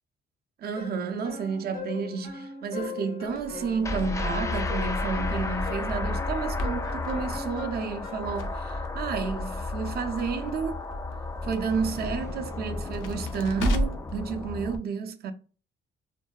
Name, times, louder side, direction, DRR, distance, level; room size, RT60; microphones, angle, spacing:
voice 1, 0.6-10.8 11.4-15.3, right 5 dB, 50° right, 0.5 m, -31 dB
sound 1, 0.8-8.4, left 5 dB, 45° left, 0.8 m, -41 dB
Crackle, 3.3-14.2, equal, 90° left, 0.5 m, -36 dB
sound 2, 3.8-14.8, left 2 dB, 15° left, 0.3 m, -32 dB
2.6 x 2.1 x 2.2 m
cardioid pair, 90°, 20 cm